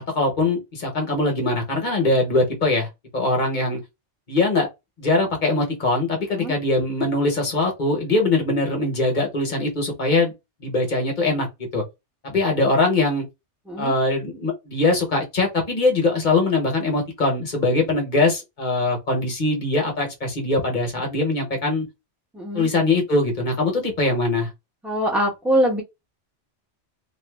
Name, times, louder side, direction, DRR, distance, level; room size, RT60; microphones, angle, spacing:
voice 1, 0.1-2.9 3.1-3.8 4.3-4.7 5.0-10.3 10.6-11.5 11.7-11.8 12.2-13.2 13.8-21.9 22.5-24.5, left 2 dB, 45° left, 1.0 m, -22 dB
voice 2, 22.3-22.7 24.8-25.8, equal, ahead, 0.9 m, -23 dB
2.5 x 2.5 x 2.3 m
omnidirectional pair, 1.2 m